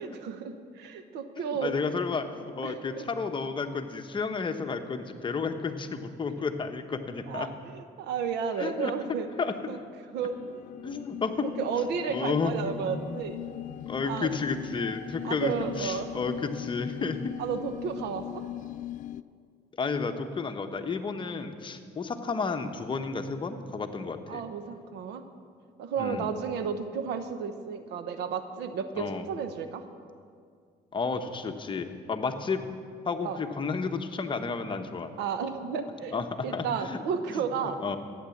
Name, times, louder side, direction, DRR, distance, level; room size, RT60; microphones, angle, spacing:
voice 1, 0.0-1.7 2.6-3.1 7.3-9.8 10.1-10.6 11.4-13.4 14.0-14.3 15.2-16.1 17.4-18.5 24.3-25.2 25.8-29.9 33.2-33.4 35.2-36.2 36.4-37.8, right 6 dB, 90° right, 9 dB, 1.1 m, -33 dB
voice 2, 1.4-7.5 8.6-8.9 9.4-9.5 10.8-11.5 12.1-13.3 13.9-17.2 19.8-24.4 26.0-26.3 29.0-29.3 30.9-32.7 33.0-35.1 36.1-37.0 37.3-37.4 37.8-38.0, left 4 dB, 30° left, 6 dB, 1.0 m, -32 dB
sound 1, 10.1-19.2, left 13 dB, 50° left, 0.4 m, -40 dB
14.0 x 9.5 x 7.2 m, 2.2 s
cardioid pair, 110°, 17 cm